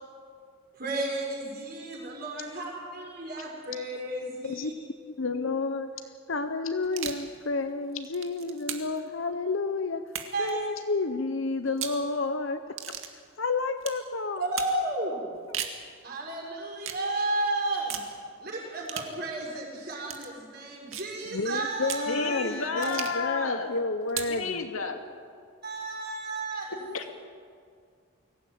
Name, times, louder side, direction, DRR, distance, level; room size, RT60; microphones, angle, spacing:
voice 1, 0.8-2.6 2.9-4.7 10.3-10.6 14.4-15.3 16.0-18.0 18.4-23.0 25.6-26.7, right 2 dB, 45° right, -2 dB, 6.0 m, -33 dB
voice 2, 5.1-5.9 6.3-10.0 10.4-12.6 13.4-14.5 21.3-24.7, left 3 dB, 70° left, 8 dB, 0.9 m, -30 dB
sound 1, 6.8-7.3 7.9-9.0 10.1-10.5 11.7-12.0 12.8-13.1 13.8-14.0 14.6-14.8 15.3-15.8 16.8-17.0 17.9-18.1 18.9-19.1 20.0-20.3 20.9-21.2 21.8-22.1 22.8-23.3 24.1-24.4, right 9 dB, 75° right, 2.2 m, -36 dB
voice 3, 22.0-23.7 24.3-25.0 26.7-27.1, left 4 dB, 85° left, 4 dB, 2.6 m, -32 dB
23.5 x 17.0 x 9.3 m, 2.1 s
head